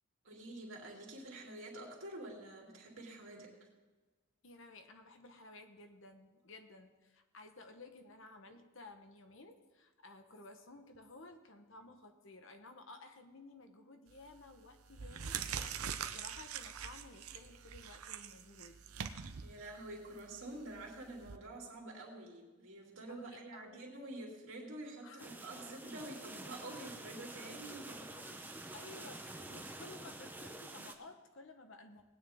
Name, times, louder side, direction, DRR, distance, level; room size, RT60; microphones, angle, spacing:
voice 1, 0.2-3.7 19.4-28.6, right 2 dB, 65° right, -2 dB, 2.9 m, -48 dB
voice 2, 4.4-18.8 23.1-23.8 25.0-25.4 27.9-28.5 28.7-32.0, left 2 dB, 60° left, 6 dB, 1.1 m, -55 dB
sound 1, 14.1-14.4 14.9-21.4, right 7 dB, 85° right, 0.7 m, -44 dB
sound 2, 25.2-30.9, right 2 dB, 10° right, 0.6 m, -48 dB
19.0 x 9.4 x 3.6 m, 1.2 s
head